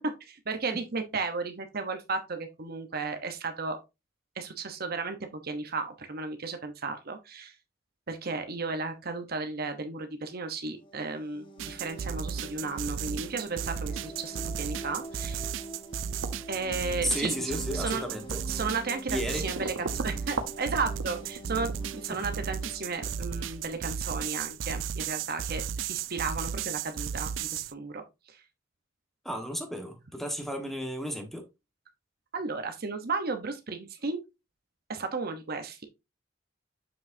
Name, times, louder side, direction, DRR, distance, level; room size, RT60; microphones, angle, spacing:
voice 1, 0.0-3.8 4.4-7.5 8.1-15.4 16.5-18.0 18.5-28.0 28.3-28.4 32.3-34.2 34.9-35.8, right 4 dB, 50° right, 0.9 m, -34 dB
sound 1, 10.7-24.3, right 2 dB, 25° left, 1.1 m, -45 dB
sound 2, 11.6-27.7, right 7 dB, 70° right, 0.4 m, -35 dB
sound 3, 16.2-24.7, right 3 dB, 90° right, 1.0 m, -42 dB
voice 2, 17.0-18.4 19.1-19.5 22.1-22.2 29.2-31.5, equal, ahead, 1.4 m, -33 dB
7.1 x 6.1 x 2.7 m
head